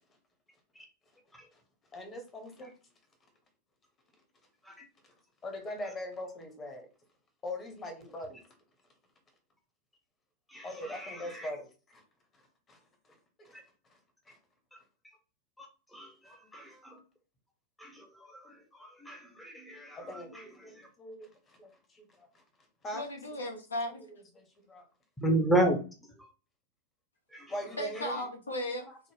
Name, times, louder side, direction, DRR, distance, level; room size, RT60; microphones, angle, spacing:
voice 1, 1.9-2.7 5.4-6.9 7.4-8.4 10.6-12.0 12.3-12.4 12.7-12.8 13.0-13.6 14.3-14.4 19.9-22.4 22.8-23.0 23.5-23.6 23.9-24.8 27.5-28.2 28.9-29.0, left 1 dB, 25° left, 0.9 m, -42 dB
voice 2, 10.5-11.5 15.6-17.0 17.8-20.9 25.2-25.8 27.3-27.6 27.9-28.1, right 1 dB, 5° left, 0.6 m, -33 dB
voice 3, 22.9-24.0 27.8-28.9, left 1 dB, 75° left, 0.7 m, -36 dB
3.6 x 2.1 x 3.2 m
figure-of-eight pair, 90°, 0 cm